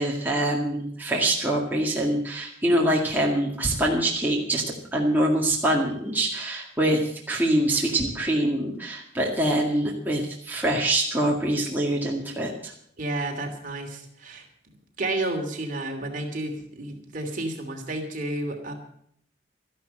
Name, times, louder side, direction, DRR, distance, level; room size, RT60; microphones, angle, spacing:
voice 1, 0.0-4.6 4.9-12.7, right 1 dB, 10° right, -3 dB, 2.0 m, -24 dB
voice 2, 13.0-14.4 15.0-18.7, right 2 dB, 45° right, 3 dB, 2.8 m, -31 dB
13.0 x 11.5 x 7.6 m, 0.67 s
head